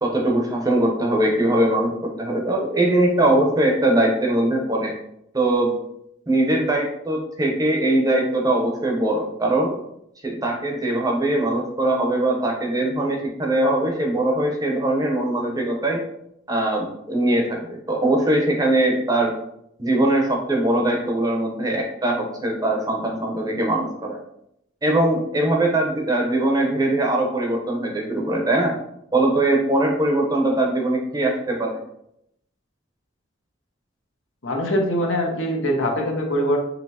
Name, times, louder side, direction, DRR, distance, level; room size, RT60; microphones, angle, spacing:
voice 1, 0.0-4.9 5.3-5.7 6.3-9.7 10.2-16.0 16.5-19.3 19.8-24.2 24.8-28.7 29.1-31.7, right 1 dB, 20° right, 0 dB, 0.8 m, -21 dB
voice 2, 34.4-36.6, equal, 75° left, 1 dB, 0.9 m, -22 dB
5.6 x 2.7 x 2.8 m, 0.76 s
head